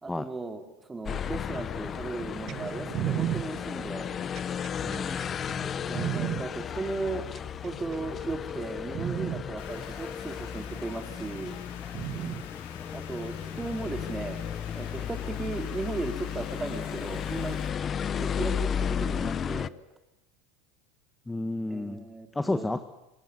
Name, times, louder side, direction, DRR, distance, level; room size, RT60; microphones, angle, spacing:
voice 1, 0.0-4.1 5.9-7.3 7.6-11.6 12.9-14.4 14.7-17.6 18.2-19.7 21.7-22.7, right 3 dB, 15° right, 6 dB, 3.2 m, -36 dB
sound 1, 1.1-19.7, left 8 dB, 35° left, 0.8 m, -34 dB
sound 2, 2.5-6.4 7.4-8.0 8.5-8.6 8.9-9.4 10.5-10.6 11.9-12.4 13.5-13.6, right 11 dB, 45° right, 1.5 m, -33 dB
voice 2, 4.8-5.3 12.1-12.4 21.3-22.0 22.3-22.8, left 2 dB, 10° left, 10 dB, 1.4 m, -32 dB
sound 3, 9.6-17.7, left 9 dB, 80° left, 3.5 m, -48 dB
25.0 x 19.0 x 9.5 m, 0.97 s
supercardioid pair, 105°, 0 cm